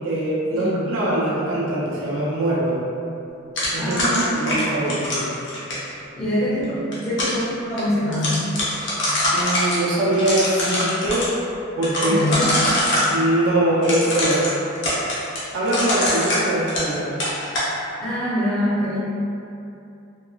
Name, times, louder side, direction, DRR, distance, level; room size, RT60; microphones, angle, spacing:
voice 1, 0.0-2.8 3.7-4.1 4.5-5.3 9.3-11.3 11.8-12.2 13.1-14.5 15.5-17.2, right 1 dB, 70° right, -7 dB, 0.5 m, -22 dB
sound 1, 3.6-5.9 6.7-7.4 7.8-7.9 8.1-9.8 10.1-11.3 11.8-13.1 13.8-16.9 17.2-17.7, left 1 dB, 60° left, 0.7 m, -23 dB
voice 2, 3.8-4.4 6.1-7.4 7.7-8.4 12.0-12.6 18.0-19.0, left 1 dB, 5° left, -14 dB, 0.5 m, -24 dB
2.9 x 2.3 x 2.3 m, 2.7 s
head